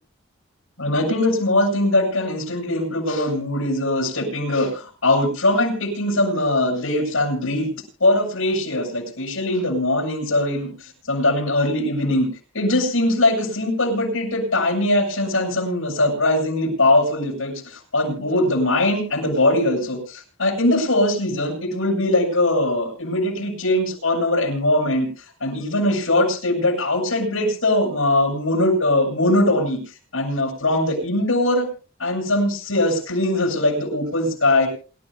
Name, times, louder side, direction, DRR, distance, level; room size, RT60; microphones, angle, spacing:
voice 1, 0.8-7.7 8.0-10.7 11.1-12.3 12.5-25.1 25.4-29.8 30.1-31.7 32.0-34.7, left 1 dB, 85° left, 2 dB, 7.8 m, -21 dB
27.5 x 13.5 x 2.3 m, 0.36 s
head